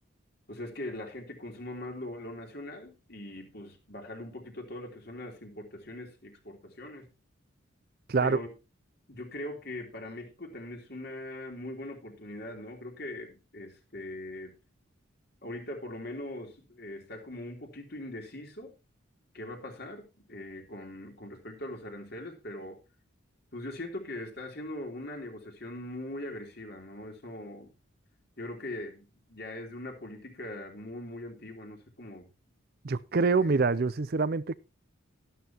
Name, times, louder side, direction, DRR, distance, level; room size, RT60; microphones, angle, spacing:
voice 1, 0.5-7.1 8.2-8.5 9.1-14.5 15.4-18.7 19.3-22.8 23.5-27.7 28.4-32.3, left 1 dB, 50° left, 3.4 m, -41 dB
voice 2, 32.8-34.6, right 4 dB, 45° right, 0.5 m, -25 dB
12.5 x 12.5 x 2.9 m
head